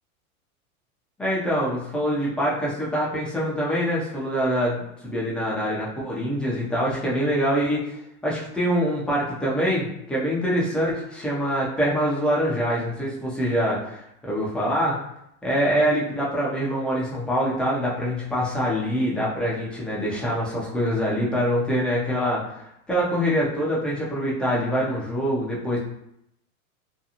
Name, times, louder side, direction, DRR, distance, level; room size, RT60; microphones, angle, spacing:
voice 1, 1.2-15.0 15.4-22.4 22.9-25.8, equal, ahead, -6 dB, 0.3 m, -24 dB
2.5 x 2.3 x 2.8 m, 0.78 s
hypercardioid pair, 115°, 44 cm